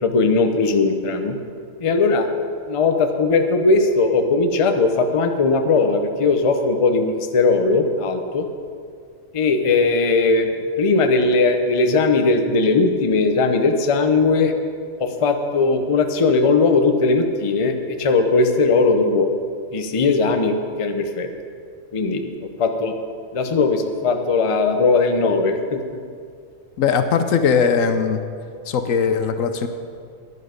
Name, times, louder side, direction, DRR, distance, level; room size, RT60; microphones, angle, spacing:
voice 1, 0.0-1.4 1.8-2.3 2.7-8.5 9.3-14.5 15.0-19.3 19.7-21.3 21.9-22.2 22.6-23.0 23.3-25.8, left 3 dB, 30° left, 6 dB, 0.6 m, -19 dB
voice 2, 26.8-28.3 28.7-29.7, left 6 dB, 70° left, 9 dB, 1.1 m, -19 dB
11.0 x 10.5 x 5.1 m, 2.2 s
omnidirectional pair, 1.4 m